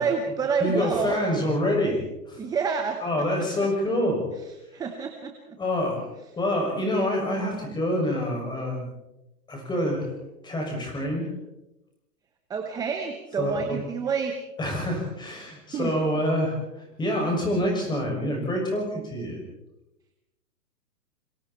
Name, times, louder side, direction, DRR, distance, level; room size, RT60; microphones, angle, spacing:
voice 1, 0.0-1.2 2.4-3.4 4.7-5.6 12.5-14.3 15.7-15.9, right 5 dB, 10° right, 5 dB, 0.8 m, -28 dB
voice 2, 0.6-2.4 3.0-4.2 5.6-6.1 6.4-8.9 9.5-10.1 10.4-11.3 13.4-13.8 14.6-19.4, left 1 dB, 10° left, 0 dB, 6.3 m, -26 dB
27.0 x 23.5 x 4.3 m, 0.93 s
hypercardioid pair, 150°, 48 cm